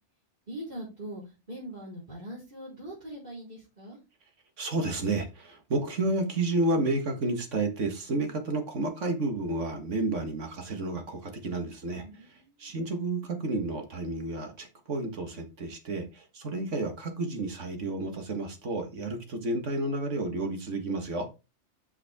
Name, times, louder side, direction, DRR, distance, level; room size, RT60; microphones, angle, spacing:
voice 1, 0.5-1.2 1.5-4.0 12.0-12.5, right 1 dB, 40° right, 4.8 m, -41 dB
voice 2, 4.6-12.0 12.6-21.3, right 2 dB, 85° right, 1.9 m, -31 dB
8.1 x 5.9 x 3.6 m
omnidirectional pair, 1.2 m